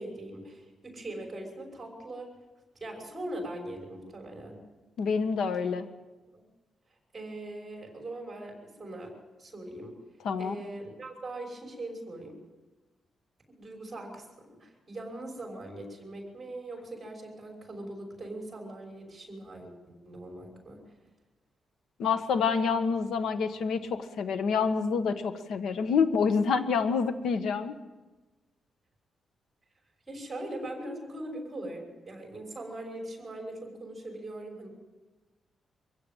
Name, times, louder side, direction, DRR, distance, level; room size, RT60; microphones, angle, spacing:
voice 1, 0.0-2.3 2.8-4.6 5.6-5.7 6.3-6.4 7.1-9.1 9.4-9.9 10.4-12.4 13.5-20.9 30.1-34.7, right 1 dB, 15° right, 1 dB, 6.0 m, -41 dB
voice 2, 5.0-5.8 10.2-10.5 22.0-27.7, left 5 dB, 90° left, 9 dB, 1.4 m, -27 dB
24.5 x 16.0 x 9.0 m, 1.2 s
wide cardioid pair, 180°, 0 cm